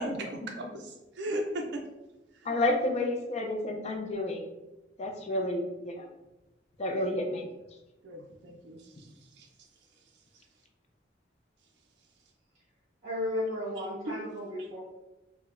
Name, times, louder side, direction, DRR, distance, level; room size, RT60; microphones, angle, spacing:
voice 1, 0.0-1.8 2.4-2.6 6.9-7.1 8.0-9.1 9.4-9.5 14.1-14.2, right 1 dB, 65° right, 1 dB, 0.4 m, -36 dB
voice 2, 2.5-4.5 5.0-6.1 6.8-7.5, left 1 dB, 35° left, 3 dB, 0.4 m, -30 dB
voice 3, 13.0-14.8, left 1 dB, 45° right, -9 dB, 1.3 m, -34 dB
4.6 x 2.1 x 2.4 m, 1.0 s
head